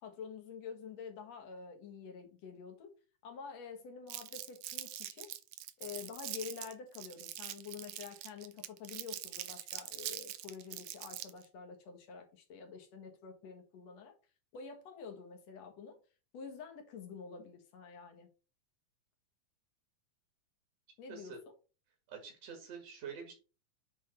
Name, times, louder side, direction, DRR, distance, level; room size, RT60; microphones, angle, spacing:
voice 1, 0.0-2.9 3.2-5.3 5.8-14.2 14.5-16.0 16.3-18.3 21.0-21.5, left 6 dB, 60° left, 2.3 m, -48 dB
Crumpling crinkling, 4.1-11.5, right 13 dB, 85° right, 1.4 m, -43 dB
voice 2, 22.1-23.3, right 6 dB, 55° right, 2.7 m, -46 dB
8.8 x 3.7 x 4.4 m
omnidirectional pair, 3.8 m